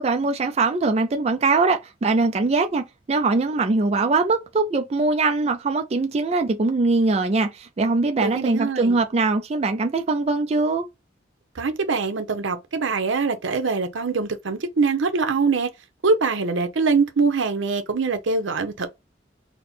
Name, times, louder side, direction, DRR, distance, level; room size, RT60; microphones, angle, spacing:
voice 1, 0.0-10.9, right 3 dB, 35° right, 0.3 m, -22 dB
voice 2, 8.2-9.0 11.6-15.7 16.0-18.9, right 4 dB, 85° right, 0.7 m, -23 dB
4.2 x 2.1 x 4.3 m
head